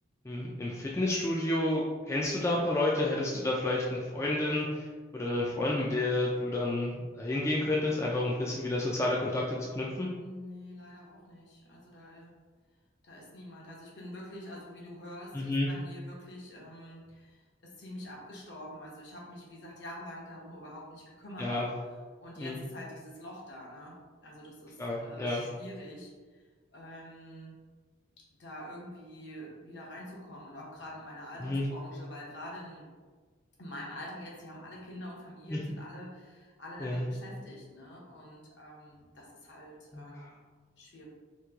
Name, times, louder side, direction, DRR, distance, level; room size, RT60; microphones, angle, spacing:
voice 1, 0.3-4.9 5.1-10.1 15.3-15.7 21.4-21.7 22.4-22.6 24.8-25.4 31.4-31.6 35.5-35.6 36.8-37.1 39.9-40.3, left 2 dB, 15° left, -4 dB, 0.3 m, -30 dB
voice 2, 10.2-12.3 13.0-21.6 22.2-24.0 24.2-26.1 26.7-27.6 28.4-32.9 33.6-40.3 40.8-41.1, left 1 dB, 65° left, -4 dB, 0.9 m, -46 dB
3.0 x 2.9 x 3.5 m, 1.4 s
head